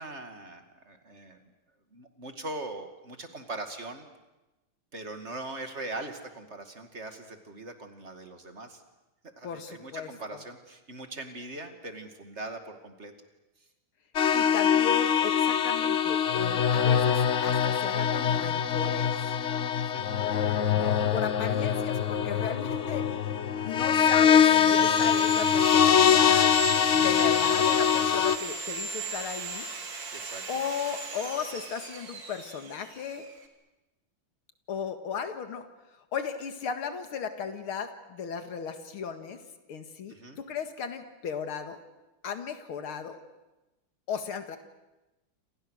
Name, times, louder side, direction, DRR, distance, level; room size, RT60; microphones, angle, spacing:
voice 1, 0.0-1.5 1.9-4.1 4.9-8.8 9.4-13.1 19.7-20.1 30.1-30.6 40.1-40.4, right 2 dB, 30° right, 6 dB, 2.5 m, -41 dB
voice 2, 9.4-10.1 14.3-19.1 20.7-23.0 23.6-26.6 26.8-29.7 30.5-33.3 34.7-35.7 36.1-39.4 39.7-41.8 42.2-43.2 44.1-44.6, left 6 dB, 80° left, 7 dB, 2.6 m, -36 dB
sound 1, 14.2-28.4, left 8 dB, 50° left, 1.0 m, -23 dB
Sawing, 23.6-33.4, right 4 dB, 60° right, 3.1 m, -37 dB
28.0 x 27.5 x 6.5 m, 1.0 s
omnidirectional pair, 2.3 m